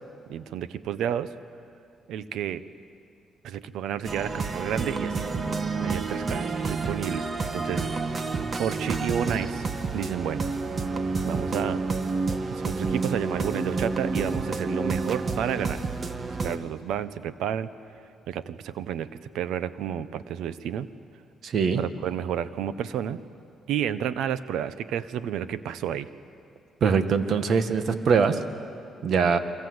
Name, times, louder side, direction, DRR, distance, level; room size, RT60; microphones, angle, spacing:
voice 1, 0.3-1.3 2.1-2.6 3.4-5.2 5.8-7.9 8.6-9.7 9.9-10.5 11.2-11.8 12.5-15.8 16.4-17.7 18.3-19.1 19.3-20.9 21.8-23.2 23.7-26.1, right 9 dB, 80° right, 14 dB, 0.9 m, -31 dB
sound 1, 4.0-16.6, right 4 dB, 40° right, 1.7 m, -29 dB
voice 2, 21.4-21.8 26.8-28.4 29.0-29.4, right 6 dB, 60° right, 9 dB, 1.7 m, -22 dB
28.0 x 24.0 x 8.0 m, 2.5 s
cardioid pair, 90°, 0 cm